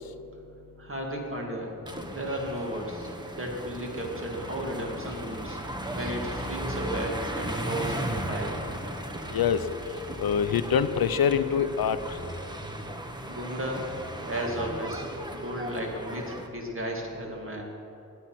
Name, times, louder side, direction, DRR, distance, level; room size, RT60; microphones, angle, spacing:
voice 1, 0.8-1.7 2.1-3.1 3.4-5.6 6.0-8.6 13.3-13.9 14.3-15.0 15.3-17.6, right 1 dB, 35° right, 0 dB, 2.4 m, -34 dB
sound 1, 1.9-16.5, right 1 dB, 10° right, 1.0 m, -36 dB
voice 2, 10.2-12.0, left 7 dB, 90° left, 12 dB, 0.7 m, -24 dB
20.0 x 8.3 x 5.9 m, 3.0 s
wide cardioid pair, 160°, 35 cm